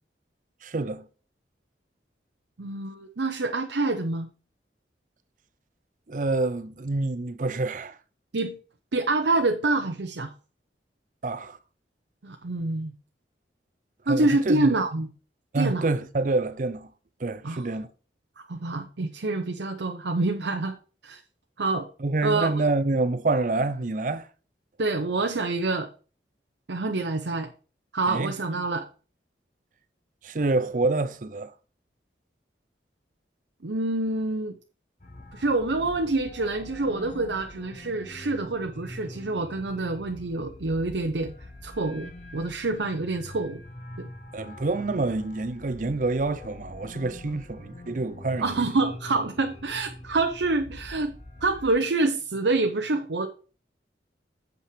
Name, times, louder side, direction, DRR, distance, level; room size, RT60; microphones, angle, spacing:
voice 1, 0.6-1.1 6.1-8.0 11.2-11.6 14.1-14.7 15.5-16.9 17.2-17.9 22.0-24.3 28.1-28.3 30.2-31.5 44.3-48.5, right 3 dB, 45° right, 0.5 m, -27 dB
voice 2, 2.6-4.3 8.3-8.6 8.9-10.3 12.2-12.9 14.1-15.1 15.5-15.9 17.4-17.6 18.5-20.7 21.0-21.2 21.6-21.9 22.2-22.6 24.8-25.9 26.7-27.5 27.9-28.9 33.6-34.6 35.3-41.3 41.6-43.6 44.0-44.1 48.4-51.2 51.4-53.3, right 2 dB, 80° right, 0.7 m, -26 dB
sound 1, 35.0-51.7, left 1 dB, 40° left, 1.5 m, -44 dB
7.6 x 5.6 x 5.0 m
head